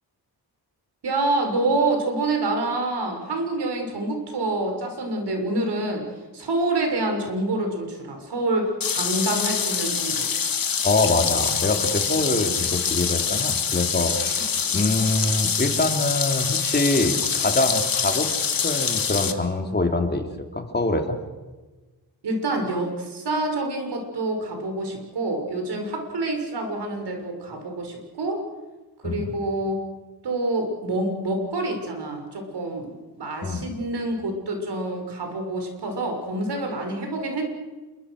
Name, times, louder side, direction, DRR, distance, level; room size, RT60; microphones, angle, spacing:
voice 1, 1.0-10.3 22.2-28.4 29.0-29.8 30.2-32.9 33.2-37.4, right 2 dB, 80° right, 4 dB, 6.5 m, -27 dB
sound 1, 8.8-19.3, left 6 dB, 60° left, 2.1 m, -25 dB
voice 2, 10.8-18.3 18.6-21.2 29.0-29.3 33.4-33.6, left 2 dB, 25° left, 4 dB, 3.0 m, -24 dB
27.5 x 23.5 x 6.5 m, 1.2 s
wide cardioid pair, 100°, 40 cm